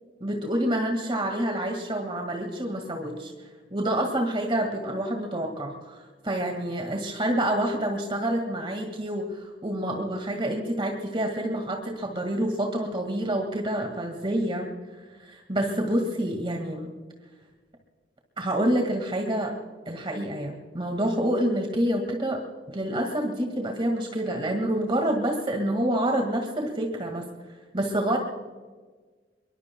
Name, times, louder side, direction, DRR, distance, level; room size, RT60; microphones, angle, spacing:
voice 1, 0.2-3.3 3.7-14.7 15.2-16.9 18.4-19.6 19.9-22.4 22.7-27.2 27.7-28.2, right 1 dB, 30° right, 3 dB, 1.9 m, -27 dB
24.5 x 23.5 x 2.3 m, 1.4 s
head